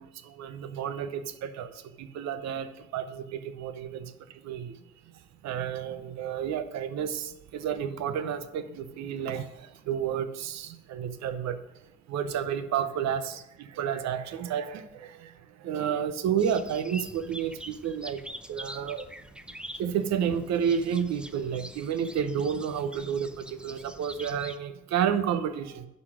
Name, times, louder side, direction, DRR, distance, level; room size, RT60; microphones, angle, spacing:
voice 1, 0.0-1.7 2.0-4.1 4.4-4.8 5.4-11.6 12.1-15.3 15.6-18.2 18.5-19.1 19.8-25.9, right 8 dB, 65° right, 11 dB, 0.8 m, -31 dB
sound 1, 16.4-24.6, equal, 5° right, 0.5 m, -45 dB
11.0 x 4.1 x 6.2 m, 0.88 s
supercardioid pair, 65°, 29 cm